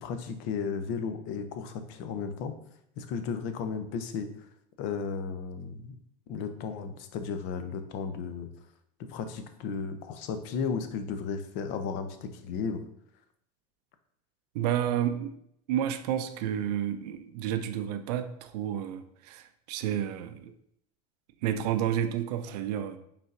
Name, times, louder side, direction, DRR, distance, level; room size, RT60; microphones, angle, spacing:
voice 1, 0.0-2.5 3.0-4.3 4.8-6.0 6.3-8.5 9.1-12.8, left 5 dB, 60° left, 8 dB, 0.6 m, -34 dB
voice 2, 14.5-15.3 15.7-20.5 21.4-23.0, right 10 dB, 75° right, 9 dB, 0.4 m, -30 dB
5.2 x 3.4 x 2.5 m, 0.73 s
supercardioid pair, 100°, 21 cm